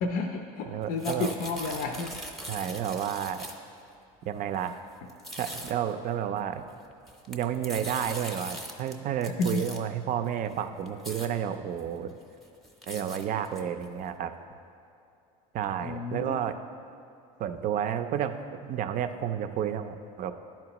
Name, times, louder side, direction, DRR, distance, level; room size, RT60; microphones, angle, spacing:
voice 1, 0.0-2.1 9.4-9.6 15.8-16.4, left 3 dB, 55° left, 3 dB, 0.6 m, -31 dB
voice 2, 0.7-1.3 2.5-3.5 4.2-4.8 5.4-6.6 7.3-12.2 12.9-14.3 15.5-16.6 17.4-20.3, right 9 dB, 45° right, 9 dB, 0.5 m, -31 dB
sound 1, 0.8-3.7 4.5-4.7 5.1-5.7 6.9-8.9 9.2-9.8 10.5-10.6 10.9-11.3 11.8-11.9 12.2-13.9, equal, ahead, 0.7 m, -41 dB
10.5 x 4.4 x 2.9 m, 2.6 s
supercardioid pair, 95°, 18 cm